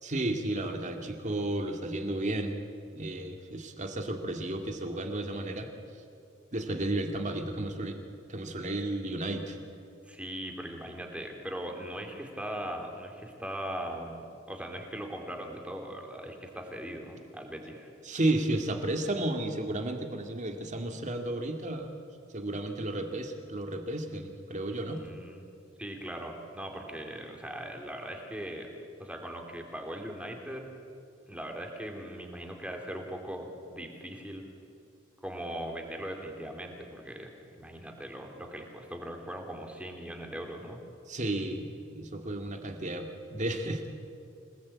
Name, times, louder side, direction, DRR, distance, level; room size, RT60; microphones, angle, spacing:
voice 1, 0.0-2.6 2.9-5.7 6.5-8.0 8.3-9.6 18.0-22.0 22.3-25.0 41.1-43.9, right 1 dB, 35° right, 4 dB, 2.3 m, -33 dB
voice 2, 10.1-17.9 25.0-25.4 25.8-28.7 29.0-30.6 31.3-34.4 35.2-40.8, right 1 dB, 5° right, 2 dB, 3.2 m, -40 dB
26.0 x 19.0 x 8.7 m, 2.4 s
head